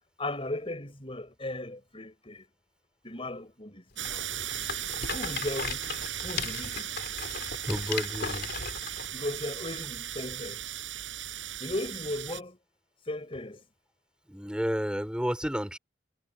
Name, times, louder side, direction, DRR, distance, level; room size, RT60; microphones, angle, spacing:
voice 1, 0.2-2.4 3.0-4.3 5.1-5.8 6.2-6.9 9.1-10.6 11.6-12.6 13.1-13.6, left 1 dB, 30° left, 4.3 m, -36 dB
Rattle, 4.0-9.1, left 5 dB, 50° left, 2.8 m, -37 dB
sound 1, 4.0-12.4, right 11 dB, 65° right, 5.8 m, -37 dB
voice 2, 7.7-8.5 14.3-15.8, equal, 5° right, 4.6 m, -31 dB
head